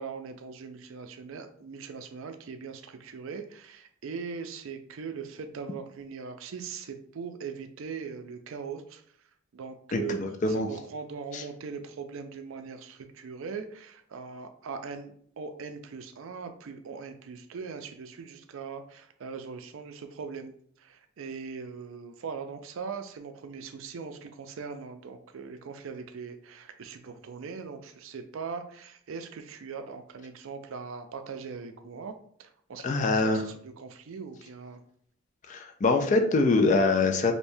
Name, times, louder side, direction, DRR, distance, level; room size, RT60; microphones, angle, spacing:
voice 1, 0.0-9.0 9.5-10.2 10.5-34.8, right 5 dB, 70° right, 7 dB, 0.4 m, -40 dB
voice 2, 9.9-10.7 11.3-11.4 32.8-33.4 35.5-37.3, left 3 dB, 35° left, 5 dB, 0.3 m, -24 dB
3.3 x 2.7 x 2.6 m, 0.62 s
head